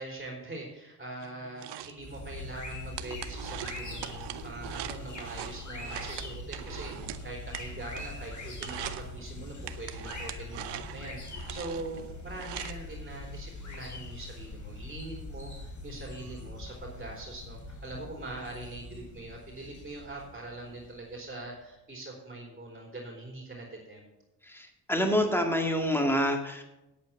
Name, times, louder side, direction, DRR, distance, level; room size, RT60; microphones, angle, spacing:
voice 1, 0.0-24.1, right 2 dB, 20° right, -1 dB, 3.7 m, -43 dB
sound 1, 1.2-8.3 8.5-9.1 9.7-12.7, right 11 dB, 80° right, 0.9 m, -42 dB
sound 2, 2.0-21.4, left 2 dB, 45° left, 2.9 m, -43 dB
voice 2, 24.5-26.6, equal, 5° left, 3 dB, 2.1 m, -27 dB
9.0 x 8.6 x 7.0 m, 0.95 s
cardioid pair, 95°, 41 cm